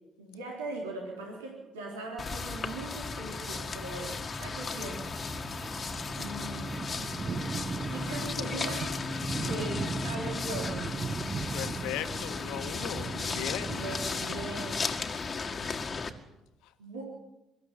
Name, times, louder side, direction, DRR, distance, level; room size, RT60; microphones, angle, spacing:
voice 1, 0.2-5.5 6.1-6.9 7.8-9.0 9.4-10.9 13.8-15.2 16.8-17.0, right 2 dB, 80° right, -1 dB, 3.9 m, -40 dB
sound 1, 2.2-16.1, left 4 dB, 35° left, 1.9 m, -35 dB
sound 2, 5.4-14.8, right 5 dB, 35° right, 1.1 m, -38 dB
voice 2, 11.2-13.9, left 11 dB, 65° left, 9 dB, 1.6 m, -38 dB
23.5 x 13.5 x 9.6 m, 0.96 s
figure-of-eight pair, 50°, 0 cm